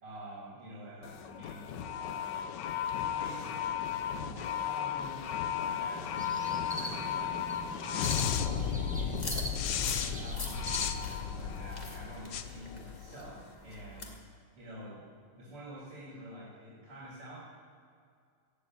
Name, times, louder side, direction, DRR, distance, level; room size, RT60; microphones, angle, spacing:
voice 1, 0.0-2.5 3.1-6.1 6.4-7.4 7.9-9.3 9.6-14.1 14.6-15.1 15.4-17.4, right 1 dB, 85° right, -7 dB, 4.1 m, -48 dB
sound 1, 1.0-13.4, left 8 dB, 70° left, 1.2 m, -34 dB
sound 2, 5.9-10.9, right 1 dB, 5° right, 0.7 m, -42 dB
sound 3, 9.1-14.2, left 2 dB, 25° left, 1.2 m, -45 dB
15.5 x 7.6 x 9.0 m, 2.2 s
omnidirectional pair, 2.4 m